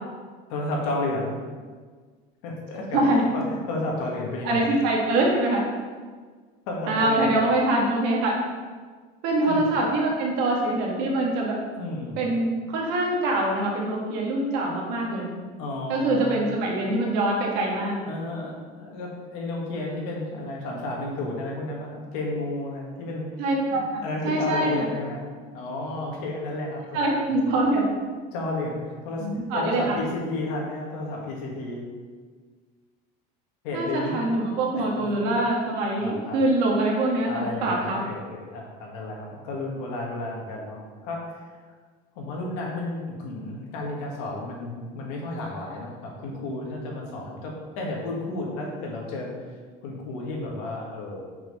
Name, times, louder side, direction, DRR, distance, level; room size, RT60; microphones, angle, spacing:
voice 1, 0.5-1.4 2.4-3.0 3.3-4.8 6.7-7.4 9.4-9.6 11.7-12.2 15.6-16.4 18.1-23.4 23.7-25.2 25.5-27.3 28.3-31.8 33.6-34.2 34.7-35.3 36.0-36.4 37.3-41.4 42.2-51.2, left 2 dB, 70° left, -2 dB, 2.0 m, -32 dB
voice 2, 2.9-3.3 4.4-5.6 6.9-8.3 9.2-11.6 12.2-15.3 15.9-18.0 23.4-24.9 26.9-27.9 29.2-30.0 33.7-38.0, right 2 dB, 55° right, -1 dB, 1.8 m, -24 dB
5.9 x 5.4 x 5.6 m, 1.5 s
cardioid pair, 170°, 20 cm